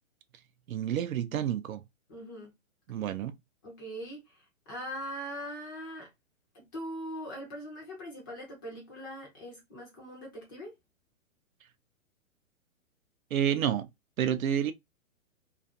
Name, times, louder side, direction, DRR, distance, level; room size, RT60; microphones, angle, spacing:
voice 1, 0.7-1.8 2.9-3.3 13.3-13.9 14.2-14.7, right 9 dB, 85° right, 0.6 m, -29 dB
voice 2, 2.1-2.5 3.6-6.1 6.5-10.8, equal, 15° left, 0.4 m, -41 dB
2.4 x 2.4 x 2.6 m
hypercardioid pair, 145°, 40 cm